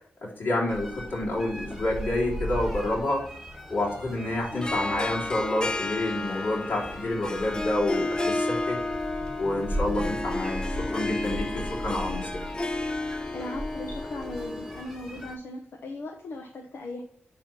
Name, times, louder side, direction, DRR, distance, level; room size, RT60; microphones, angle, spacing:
voice 1, 0.2-3.3 3.7-8.8 9.4-12.5, left 1 dB, 55° left, -4 dB, 3.4 m, -29 dB
sound 1, 0.7-15.4, equal, 5° left, 1.7 m, -38 dB
Harp, 4.5-14.8, left 2 dB, 20° left, 0.4 m, -32 dB
voice 2, 13.3-17.0, left 2 dB, 70° left, 2 dB, 1.1 m, -38 dB
10.5 x 3.8 x 4.3 m, 0.64 s
wide cardioid pair, 160°, 4 cm